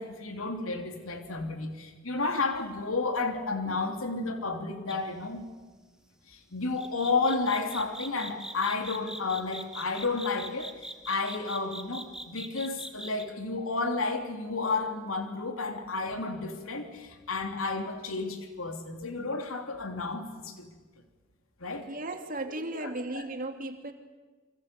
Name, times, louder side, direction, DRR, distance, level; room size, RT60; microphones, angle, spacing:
voice 1, 0.0-5.5 6.3-20.7 21.6-21.9 22.8-22.9 23.1-23.2, left 3 dB, 85° left, 5 dB, 3.1 m, -32 dB
sound 1, 4.9-5.1 6.8-13.2, right 1 dB, 5° right, 2.0 m, -41 dB
voice 2, 21.9-23.9, right 2 dB, 45° right, 5 dB, 2.9 m, -35 dB
28.5 x 25.0 x 8.4 m, 1.3 s
head